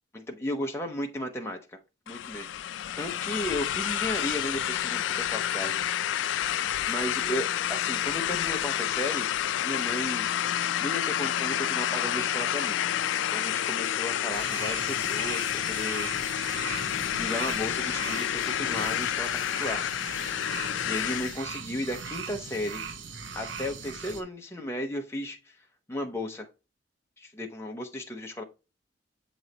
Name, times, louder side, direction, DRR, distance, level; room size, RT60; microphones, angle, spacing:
voice 1, 0.1-1.8 2.1-2.5 3.0-5.8 6.9-9.3 9.6-10.2 10.8-12.8 13.3-16.1 17.1-19.8 20.9-22.8 23.3-25.6 25.9-26.5 27.2-28.4, left 1 dB, 15° left, 2 dB, 0.7 m, -34 dB
sound 1, 2.1-21.4, left 11 dB, 75° left, 0.3 m, -29 dB
sound 2, 14.3-24.2, right 5 dB, 85° right, 0.8 m, -39 dB
7.7 x 3.1 x 4.0 m, 0.28 s
head